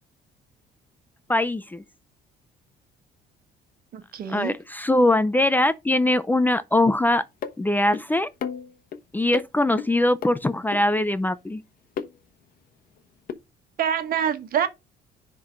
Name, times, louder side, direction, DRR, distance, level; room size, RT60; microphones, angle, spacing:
voice 1, 1.3-1.8 4.3-7.2 7.6-8.3 9.1-11.6, left 1 dB, 10° left, 0.5 m, -22 dB
voice 2, 3.9-4.5 13.8-14.7, right 8 dB, 60° right, 1.5 m, -25 dB
sound 1, 7.4-7.6 7.9-8.0 8.4-9.0 9.3-9.5 9.8-9.9 10.2-10.3 10.7-10.8 12.0-12.1 13.3-13.4, left 7 dB, 60° left, 1.1 m, -31 dB
10.0 x 3.8 x 5.2 m
cardioid pair, 110°, 17 cm